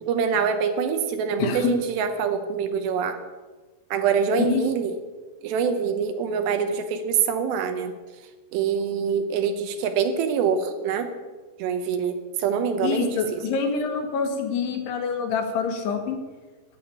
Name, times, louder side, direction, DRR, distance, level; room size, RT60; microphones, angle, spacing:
voice 1, 0.0-3.2 3.9-5.0 5.4-7.9 8.5-11.1 11.6-13.4, right 6 dB, 80° right, 7 dB, 3.0 m, -25 dB
voice 2, 1.4-1.7 4.4-4.6 12.8-16.2, left 5 dB, 70° left, 5 dB, 3.5 m, -26 dB
13.5 x 6.4 x 9.8 m, 1.3 s
omnidirectional pair, 5.1 m